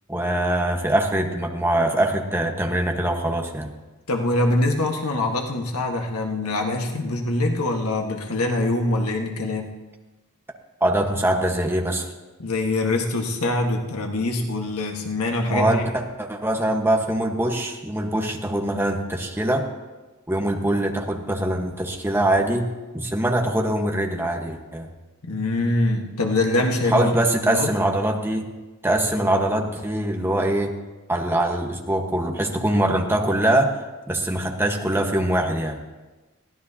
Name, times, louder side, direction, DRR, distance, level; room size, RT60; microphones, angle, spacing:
voice 1, 0.1-3.7 10.8-12.1 15.5-19.7 20.3-24.9 26.9-28.5 28.8-30.8 31.1-33.8 34.1-35.8, right 1 dB, 10° right, 1 dB, 1.3 m, -23 dB
voice 2, 4.1-9.7 12.4-15.8 25.2-27.2 27.5-27.7, left 2 dB, 85° left, 2 dB, 1.5 m, -24 dB
22.0 x 16.5 x 2.9 m, 1.2 s
head